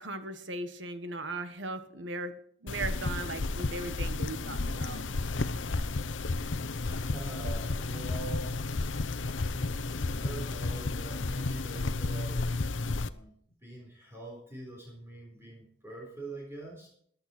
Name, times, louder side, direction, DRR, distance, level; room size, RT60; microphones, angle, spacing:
voice 1, 0.0-5.0, right 2 dB, 70° right, 10 dB, 1.6 m, -38 dB
sound 1, 2.7-13.1, left 3 dB, 85° left, 0.8 m, -32 dB
voice 2, 6.8-12.4 12.7-13.3 13.6-16.9, right 2 dB, 15° right, -2 dB, 3.8 m, -45 dB
14.5 x 11.5 x 4.4 m, 0.62 s
head